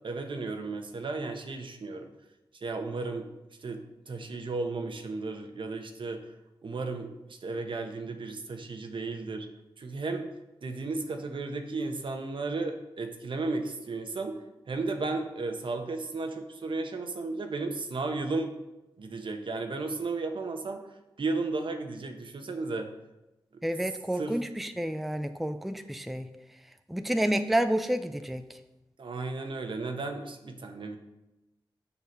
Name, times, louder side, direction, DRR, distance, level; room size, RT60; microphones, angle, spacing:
voice 1, 0.0-2.1 2.6-3.3 3.6-6.2 6.6-9.5 9.8-10.3 10.6-14.4 14.7-18.5 19.0-20.9 21.2-22.9 24.1-24.3 29.0-31.0, right 3 dB, 65° right, 5 dB, 1.1 m, -34 dB
voice 2, 23.6-26.3 26.9-28.6, right 1 dB, ahead, 8 dB, 0.5 m, -29 dB
7.0 x 5.9 x 5.3 m, 0.97 s
cardioid pair, 60°, 9 cm